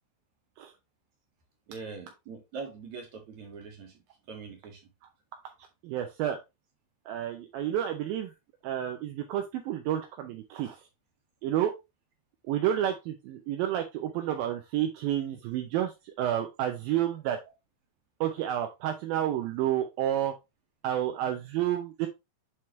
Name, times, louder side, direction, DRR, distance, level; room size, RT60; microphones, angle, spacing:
voice 1, 1.7-4.0 4.3-4.8, right 4 dB, 55° right, 1 dB, 2.7 m, -42 dB
voice 2, 5.8-6.4 7.1-8.3 8.6-10.8 11.4-11.7 12.5-15.9 16.2-17.4 18.2-20.3 20.8-22.1, right 11 dB, 80° right, 4 dB, 2.5 m, -30 dB
7.4 x 4.7 x 3.2 m, 0.23 s
omnidirectional pair, 4.3 m